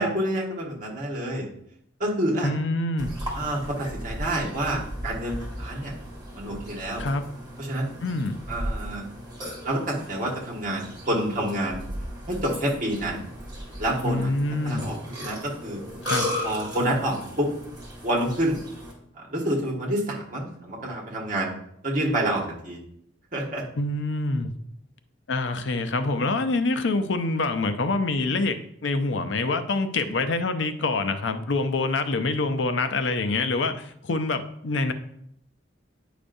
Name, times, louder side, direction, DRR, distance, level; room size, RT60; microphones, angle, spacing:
voice 1, 0.0-1.5 2.0-2.5 3.3-5.9 6.3-7.0 7.6-7.9 8.5-9.0 9.6-11.8 12.3-13.2 13.8-14.3 14.6-15.8 16.4-17.5 18.0-18.6 19.2-21.5 21.8-22.8 23.3-23.6, right 1 dB, 45° right, -2 dB, 1.6 m, -28 dB
voice 2, 2.4-3.1 7.0-7.3 8.0-8.4 14.0-14.9 16.0-16.3 23.8-24.5 25.3-34.9, left 3 dB, 70° left, 9 dB, 0.5 m, -26 dB
Burping eructation, 3.0-18.9, equal, 20° right, 2.1 m, -36 dB
9.7 x 5.0 x 2.6 m, 0.73 s
head